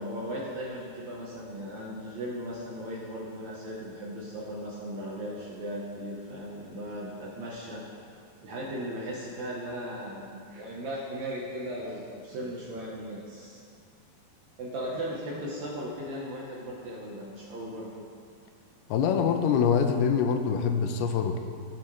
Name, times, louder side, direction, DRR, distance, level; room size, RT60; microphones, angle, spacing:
voice 1, 0.0-7.9 8.4-13.6 14.6-18.0, equal, 65° right, -4 dB, 1.9 m, -37 dB
voice 2, 18.9-21.4, left 6 dB, 85° left, 6 dB, 2.5 m, -24 dB
19.0 x 7.1 x 3.2 m, 2.3 s
omnidirectional pair, 4.6 m